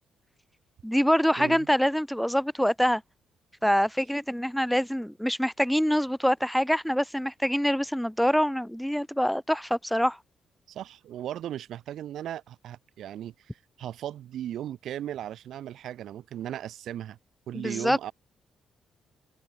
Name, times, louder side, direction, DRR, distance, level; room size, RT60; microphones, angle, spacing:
voice 1, 0.8-3.0 3.6-10.2 17.5-18.0, equal, ahead, 2.2 m, -25 dB
voice 2, 1.4-1.7 10.7-13.3 13.8-17.2 17.5-18.1, right 11 dB, 75° right, 3.4 m, -37 dB
cardioid pair, 90°, 0 cm